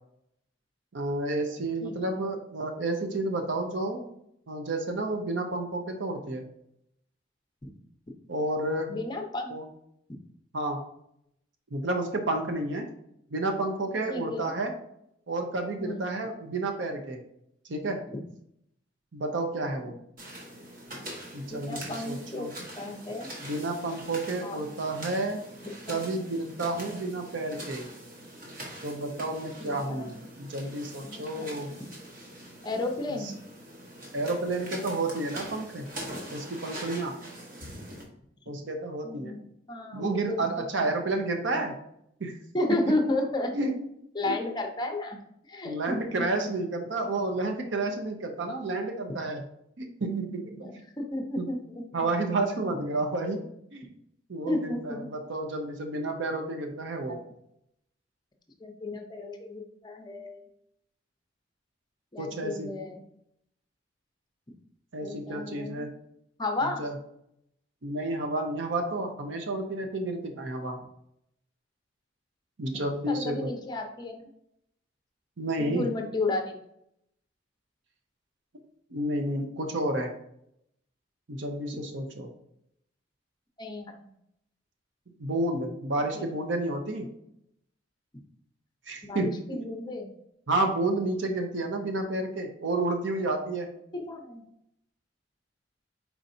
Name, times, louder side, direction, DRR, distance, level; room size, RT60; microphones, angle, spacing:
voice 1, 0.9-4.1 4.5-6.5 8.3-8.9 9.5-9.7 10.5-10.8 11.7-12.9 13.3-14.7 15.3-17.2 17.7-18.0 19.1-20.0 21.3-22.5 23.4-25.4 25.9-27.9 28.8-31.7 33.1-33.2 34.1-35.9 36.3-37.2 38.5-39.3 39.9-41.8 42.2-42.4 43.5-43.8 44.2-44.4 45.6-49.4 49.8-50.8 51.4-51.5 51.9-53.4 53.7-53.9 54.3-57.2 62.2-62.7 64.9-65.9 66.6-67.0 67.8-70.8 72.6-73.5 75.4-75.9 78.9-80.1 81.3-82.3 85.2-87.1 88.9-89.6 90.5-93.7, right 2 dB, 70° right, 3 dB, 0.7 m, -30 dB
voice 2, 1.8-2.1 8.9-9.6 14.1-14.5 15.8-16.1 21.5-22.5 22.8-23.3 24.4-24.7 25.9-26.0 29.6-30.1 31.0-31.5 32.6-33.3 39.0-39.4 39.7-40.4 40.7-40.8 42.5-43.5 44.2-45.2 45.5-46.5 50.6-51.8 54.4-55.1 57.1-57.2 58.6-60.4 62.1-63.0 65.0-65.9 66.4-66.8 73.1-74.2 75.6-76.6 83.6-83.9 86.1-86.2 89.1-90.1 93.9-94.4, left 2 dB, 25° left, 3 dB, 0.6 m, -33 dB
sound 1, 20.2-38.0, right 1 dB, 50° right, 1.1 m, -43 dB
4.5 x 4.1 x 2.6 m, 0.76 s
head